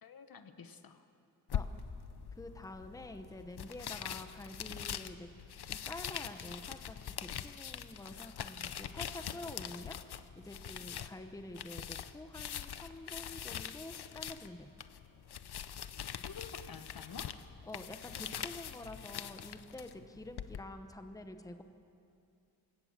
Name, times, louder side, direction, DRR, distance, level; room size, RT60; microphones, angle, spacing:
voice 1, 0.0-1.1 16.2-17.3, left 5 dB, 65° left, 9 dB, 1.2 m, -49 dB
sound 1, 1.5-20.6, left 9 dB, 85° left, 0.8 m, -43 dB
voice 2, 2.4-5.3 5.7-14.7 17.7-21.6, left 1 dB, 10° left, 7 dB, 0.9 m, -48 dB
27.5 x 17.0 x 7.4 m, 2.6 s
wide cardioid pair, 140°, 38 cm